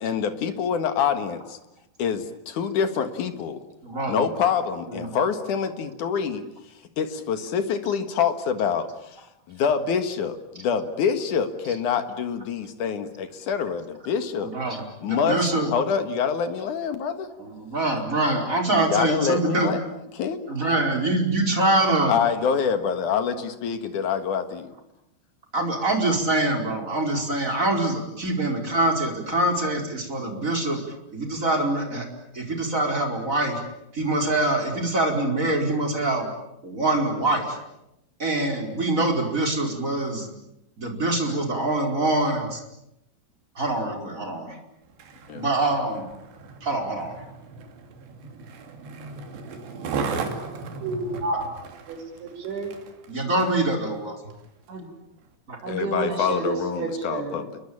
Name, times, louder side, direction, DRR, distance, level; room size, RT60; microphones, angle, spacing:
voice 1, 0.0-1.6 2.0-3.6 4.1-6.4 7.0-8.9 9.5-14.5 15.0-15.4 15.7-17.3 18.7-19.8 20.1-20.5 22.1-24.7 45.3-45.4 55.7-57.6, left 7 dB, 55° left, 9 dB, 2.7 m, -26 dB
voice 2, 3.8-4.2 4.9-5.2 14.4-15.7 17.4-19.7 20.5-22.1 25.5-30.8 31.1-32.1 32.3-33.6 33.9-36.3 36.6-37.6 38.2-40.3 40.8-42.6 43.6-44.6 45.3-46.0 46.6-47.1 53.1-54.2 55.5-55.6, right 2 dB, 20° right, 3 dB, 4.6 m, -24 dB
Skateboard, 44.8-53.7 54.3-54.4, right 4 dB, 75° right, 4.9 m, -36 dB
voice 3, 50.8-51.5 51.9-52.7 54.7-54.9 55.6-57.4, right 3 dB, 90° right, 3 dB, 8.3 m, -30 dB
29.5 x 23.0 x 8.7 m, 0.85 s
omnidirectional pair, 5.1 m